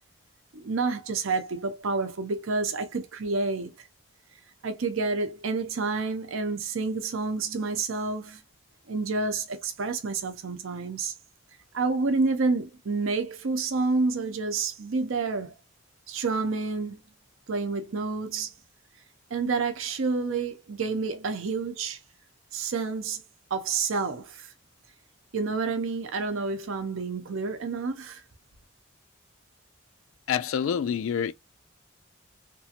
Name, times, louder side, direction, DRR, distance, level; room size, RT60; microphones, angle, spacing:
voice 1, 0.5-3.7 4.6-8.4 8.9-11.1 11.7-15.5 16.1-17.0 17.5-18.5 19.3-22.0 22.5-23.2 23.5-24.5 25.3-28.2, right 4 dB, 75° right, 0.6 m, -29 dB
voice 2, 30.3-31.3, left 8 dB, 75° left, 0.3 m, -27 dB
3.0 x 2.4 x 2.8 m
head